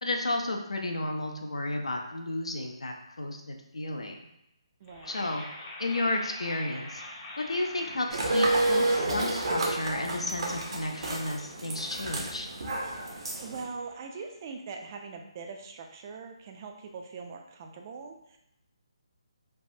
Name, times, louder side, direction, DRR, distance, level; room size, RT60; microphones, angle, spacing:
voice 1, 0.0-4.3 5.1-5.4 5.8-7.0 7.4-12.5, left 2 dB, 80° left, 2 dB, 0.5 m, -32 dB
sound 1, 4.8-14.9, left 2 dB, 25° left, 0.5 m, -46 dB
voice 2, 4.8-5.3 13.4-18.4, right 4 dB, 35° right, 3 dB, 0.3 m, -42 dB
sound 2, 8.1-13.6, right 2 dB, 60° right, 0.7 m, -30 dB
3.3 x 2.1 x 2.6 m, 0.82 s
figure-of-eight pair, 150°, 3 cm